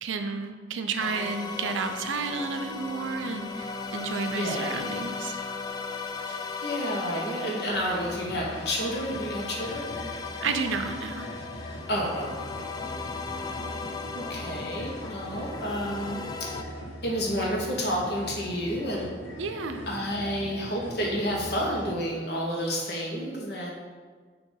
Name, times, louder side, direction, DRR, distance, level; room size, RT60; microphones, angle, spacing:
voice 1, 0.0-5.4 6.3-6.4 10.4-11.3 19.4-19.9, right 4 dB, 85° right, 7 dB, 0.5 m, -31 dB
sound 1, 1.0-16.6, left 4 dB, 20° left, 0.3 m, -37 dB
voice 2, 4.3-4.7 6.6-9.9 11.9-12.6 14.1-16.5 17.0-19.1 19.9-23.7, equal, 55° left, -2 dB, 1.2 m, -30 dB
sound 2, 7.7-21.9, equal, 85° left, 1.5 m, -41 dB
6.3 x 2.9 x 5.5 m, 1.6 s
head